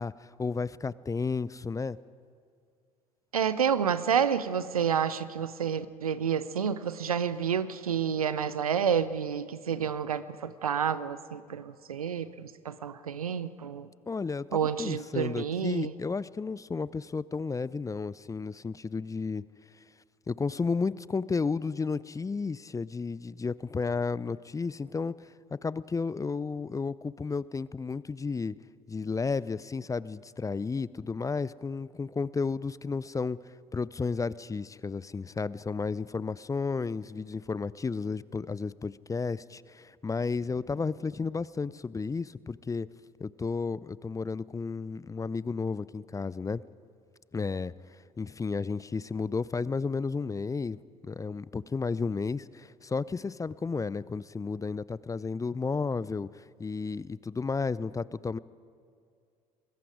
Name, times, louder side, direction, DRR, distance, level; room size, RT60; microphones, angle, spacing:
voice 1, 0.0-2.0 14.1-19.4 20.3-25.1 25.5-28.6 28.9-33.4 33.7-42.9 43.2-46.6 47.3-47.7 48.2-58.4, left 4 dB, 20° left, 20 dB, 0.5 m, -32 dB
voice 2, 3.3-13.9 14.5-15.9, right 7 dB, 85° right, 15 dB, 0.6 m, -29 dB
25.5 x 21.0 x 5.0 m, 2.3 s
figure-of-eight pair, 55°, 18 cm